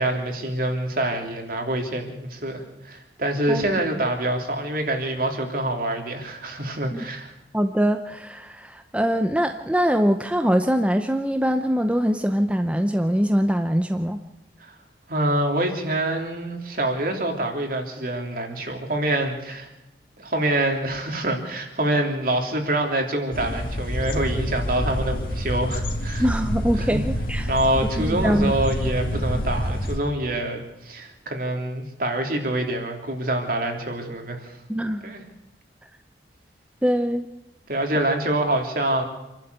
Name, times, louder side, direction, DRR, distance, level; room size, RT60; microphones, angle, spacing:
voice 1, 0.0-7.3 15.1-19.7 20.2-26.3 26.8-27.0 27.5-34.5 35.0-35.2 37.7-39.0, right 1 dB, 50° right, 3 dB, 3.2 m, -26 dB
voice 2, 7.5-14.2 26.2-27.5 28.0-28.5 34.7-35.0 36.8-37.3, equal, 5° right, 7 dB, 0.7 m, -23 dB
sound 1, 23.3-30.0, equal, 50° left, 2.6 m, -27 dB
27.0 x 12.0 x 8.1 m, 0.97 s
head